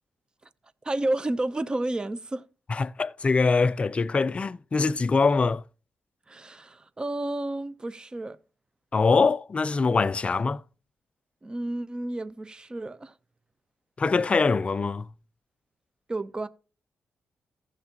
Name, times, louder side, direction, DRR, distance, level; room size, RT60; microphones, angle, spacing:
voice 1, 0.8-2.4 6.3-8.4 11.4-13.1 16.1-16.5, right 2 dB, 20° right, 0.8 m, -31 dB
voice 2, 2.7-5.6 8.9-10.6 14.0-15.1, left 4 dB, 30° left, 0.4 m, -23 dB
15.0 x 7.1 x 3.0 m
cardioid pair, 95°, 4 cm